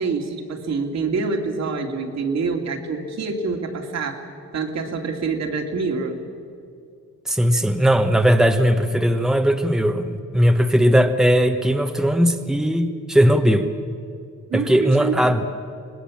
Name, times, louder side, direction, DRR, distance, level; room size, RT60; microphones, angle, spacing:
voice 1, 0.0-4.2 4.5-6.3 14.5-15.4, right 4 dB, 60° right, 3 dB, 2.7 m, -26 dB
voice 2, 7.2-13.7 14.5-15.4, equal, ahead, 6 dB, 1.3 m, -18 dB
25.0 x 19.0 x 7.3 m, 2.4 s
cardioid pair, 90°, 30 cm